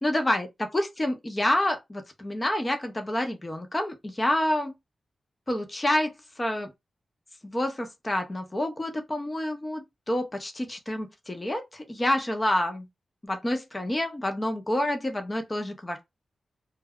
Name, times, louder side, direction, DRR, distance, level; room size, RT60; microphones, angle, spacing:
voice 1, 0.0-0.5 0.7-4.7 5.5-6.1 6.4-6.7 7.4-12.9 13.2-16.1, left 1 dB, 25° left, 0.7 m, -28 dB
2.2 x 2.0 x 3.5 m
wide cardioid pair, 95°, 0 cm